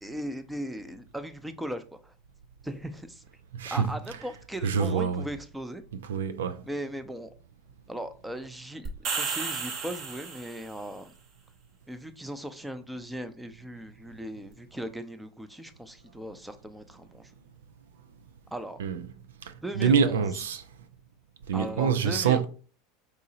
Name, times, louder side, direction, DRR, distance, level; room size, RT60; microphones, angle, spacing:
voice 1, 0.0-2.1 2.6-3.2 3.7-5.8 6.6-7.3 7.9-11.1 11.9-17.3 18.5-18.8 19.6-20.3 21.5-22.5, right 1 dB, 5° right, 0.5 m, -38 dB
voice 2, 3.5-3.9 4.6-5.2 6.1-6.6 18.8-19.0 19.4-20.6 21.5-22.5, right 6 dB, 75° right, 0.3 m, -26 dB
sound 1, 8.9-10.8, right 5 dB, 50° right, 0.9 m, -33 dB
4.8 x 2.8 x 2.7 m
hypercardioid pair, 85°, 0 cm